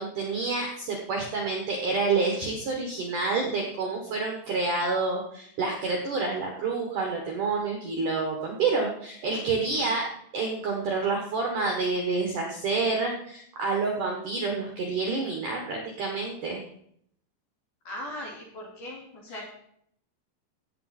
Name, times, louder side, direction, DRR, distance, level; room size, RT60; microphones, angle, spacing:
voice 1, 0.0-10.0 10.3-16.6 19.3-19.4, right 3 dB, 65° right, 1 dB, 2.1 m, -28 dB
voice 2, 17.9-19.5, left 1 dB, 45° left, -2 dB, 3.5 m, -39 dB
16.0 x 8.5 x 4.3 m, 0.68 s
omnidirectional pair, 5.7 m